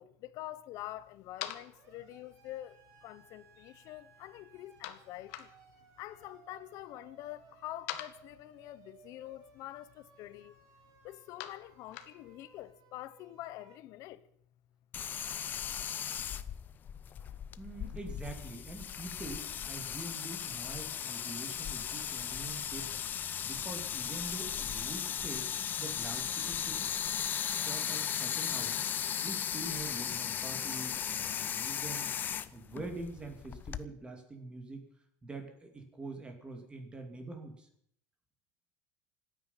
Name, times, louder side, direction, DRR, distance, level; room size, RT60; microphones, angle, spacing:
voice 1, 0.0-5.5 6.0-10.6 11.0-14.2, left 14 dB, 45° left, 0.9 m, -46 dB
sound 1, 0.7-12.7, left 12 dB, 70° left, 1.4 m, -50 dB
Siren, 1.4-13.8, right 6 dB, 45° right, 3.4 m, -62 dB
sound 2, 14.9-33.9, left 9 dB, 25° left, 0.5 m, -37 dB
voice 2, 17.6-23.0 23.4-25.5 25.8-28.8 29.2-32.1 32.5-34.8 35.2-37.7, right 2 dB, 10° right, 2.7 m, -45 dB
26.5 x 9.4 x 5.8 m
cardioid pair, 165°, 8 cm